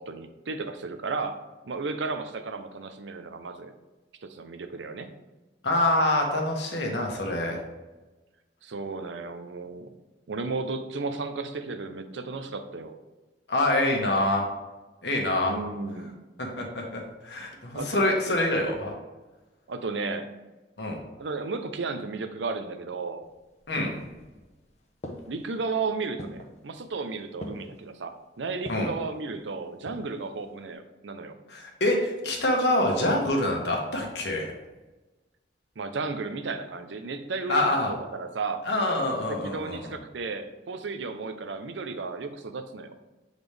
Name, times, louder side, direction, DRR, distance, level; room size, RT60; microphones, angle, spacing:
voice 1, 0.0-1.4 1.6-3.7 4.2-5.1 8.6-9.9 10.3-12.9 15.5-16.2 17.7-17.9 19.7-20.3 21.2-23.2 25.3-31.3 35.8-38.7 39.3-42.9, right 4 dB, 85° right, 8 dB, 0.6 m, -34 dB
voice 2, 5.6-7.6 13.5-14.5 15.0-15.5 16.4-18.9 20.8-21.0 23.7-23.9 28.7-28.9 31.5-34.5 37.5-37.9 38.6-39.8, left 1 dB, 70° left, 0 dB, 1.2 m, -26 dB
sound 1, 23.2-24.6 25.0-25.6 26.2-26.6 27.4-27.8 28.7-29.1 29.6-30.2 30.5-30.6, left 1 dB, 35° left, 0.7 m, -41 dB
7.0 x 4.0 x 3.3 m, 1.1 s
head